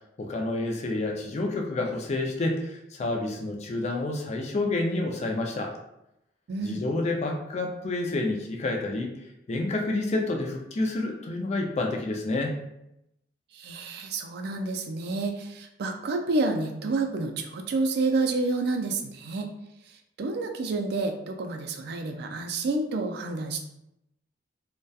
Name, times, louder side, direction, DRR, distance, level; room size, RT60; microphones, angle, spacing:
voice 1, 0.2-5.7 6.6-9.1 9.5-12.6, left 2 dB, 35° left, 1 dB, 0.4 m, -29 dB
voice 2, 6.5-6.8 13.5-19.5 19.9-23.6, right 3 dB, 60° right, 4 dB, 0.3 m, -29 dB
2.7 x 2.1 x 2.3 m, 0.82 s
head